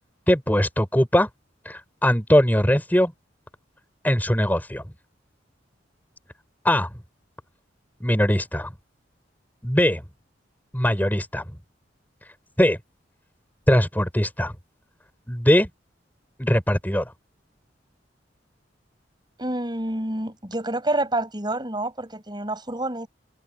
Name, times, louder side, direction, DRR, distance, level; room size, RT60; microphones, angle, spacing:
voice 1, 0.3-1.3 1.7-3.1 4.0-4.8 6.6-6.9 8.0-8.7 9.6-10.0 10.7-11.4 12.6-12.8 13.7-14.5 15.3-15.7 16.4-17.0, equal, 10° left, 5.5 m, -20 dB
voice 2, 19.4-23.1, right 1 dB, 25° right, 7.6 m, -28 dB
head